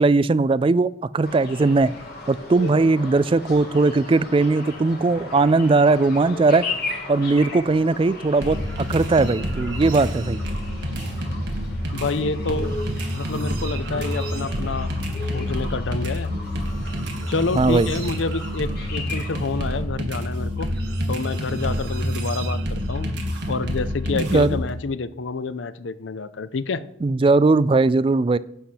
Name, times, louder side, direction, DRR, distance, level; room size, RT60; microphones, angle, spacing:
voice 1, 0.0-1.9 2.3-6.7 7.1-10.4 17.5-17.9 24.1-24.6 27.0-28.4, right 3 dB, 30° right, 16 dB, 0.3 m, -19 dB
sound 1, 1.2-19.8, left 2 dB, 50° left, 2.5 m, -37 dB
sound 2, 8.4-24.7, equal, 60° right, 1.9 m, -28 dB
voice 2, 11.9-12.7 13.1-14.9 15.3-16.3 17.3-20.8 21.1-23.1 23.5-26.9, left 4 dB, 75° left, 15 dB, 0.6 m, -28 dB
11.0 x 4.3 x 7.9 m, 0.73 s
head